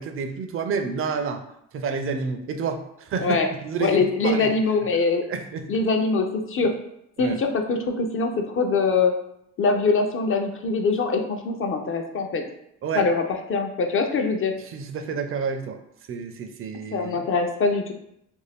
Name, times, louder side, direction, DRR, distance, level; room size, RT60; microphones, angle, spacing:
voice 1, 0.0-1.4 1.7-4.5 4.9-5.7 7.2-7.4 12.8-13.1 14.6-15.8 16.1-17.2, right 5 dB, 45° right, 7 dB, 0.4 m, -29 dB
voice 2, 3.8-5.2 5.7-6.7 7.2-9.1 9.6-12.4 13.0-13.2 13.5-14.5 16.9-17.9, left 4 dB, 45° left, 4 dB, 0.5 m, -23 dB
2.6 x 2.2 x 3.3 m, 0.75 s
cardioid pair, 90°, 30 cm